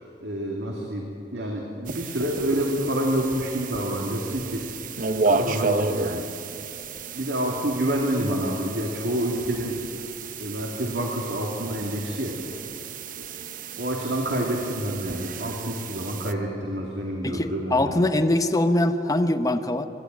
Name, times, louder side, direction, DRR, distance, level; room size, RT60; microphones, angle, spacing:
voice 1, 0.0-4.7 5.2-6.3 7.1-9.8 10.4-12.4 13.2-13.3 13.8-18.1, right 1 dB, 75° right, -1 dB, 2.4 m, -28 dB
sound 1, 1.9-16.3, right 4 dB, 50° right, 0.8 m, -32 dB
voice 2, 17.2-19.9, left 1 dB, 20° left, 7 dB, 0.9 m, -22 dB
25.0 x 12.0 x 9.4 m, 3.0 s
head